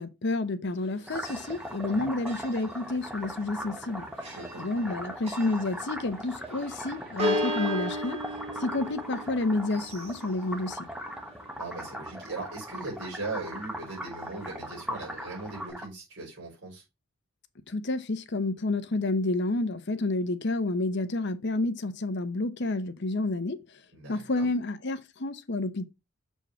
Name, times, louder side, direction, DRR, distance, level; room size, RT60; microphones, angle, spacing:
voice 1, 0.0-4.1 4.6-8.2 8.6-10.9 17.7-23.8 24.1-25.9, left 2 dB, 55° left, 0.8 m, -30 dB
Church bell, 0.6-15.7, equal, 30° right, 2.4 m, -38 dB
sound 1, 1.1-15.9, equal, 5° right, 1.1 m, -40 dB
voice 2, 4.2-5.0 11.6-16.8 23.9-24.5, right 3 dB, 55° right, 5.2 m, -39 dB
7.0 x 4.5 x 4.5 m
head